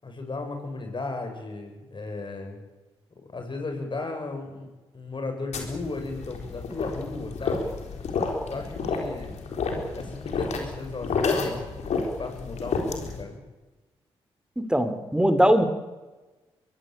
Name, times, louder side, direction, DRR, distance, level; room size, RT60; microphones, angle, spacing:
voice 1, 0.0-2.6 3.3-7.7 8.5-9.4 10.0-11.7 12.0-13.4, left 3 dB, 45° left, 4 dB, 7.2 m, -35 dB
sound 1, 5.5-13.2, left 4 dB, 75° left, 4.2 m, -30 dB
voice 2, 14.6-15.7, equal, 5° right, 10 dB, 3.0 m, -21 dB
23.0 x 16.5 x 8.9 m, 1.2 s
supercardioid pair, 45°, 12 cm